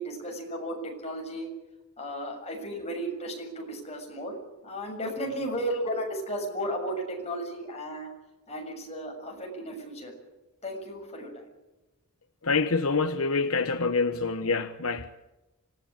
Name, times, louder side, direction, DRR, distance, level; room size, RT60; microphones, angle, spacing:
voice 1, 0.0-1.5 2.0-4.4 4.6-8.1 8.5-10.1 10.6-11.3, equal, 30° left, 1 dB, 7.2 m, -34 dB
voice 2, 12.4-15.1, left 4 dB, 65° left, 9 dB, 1.1 m, -26 dB
26.0 x 18.5 x 8.9 m, 1.0 s
head